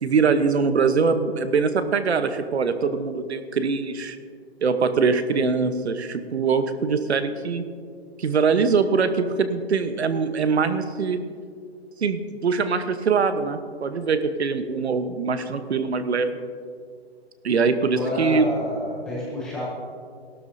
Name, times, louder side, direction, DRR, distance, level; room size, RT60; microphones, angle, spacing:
voice 1, 0.0-4.2 4.6-7.6 8.2-11.2 12.0-16.4 17.4-18.5, right 5 dB, 75° right, 10 dB, 1.1 m, -23 dB
voice 2, 17.9-19.7, left 1 dB, ahead, -9 dB, 0.7 m, -29 dB
16.5 x 12.5 x 2.7 m, 2.1 s
hypercardioid pair, 170°, 33 cm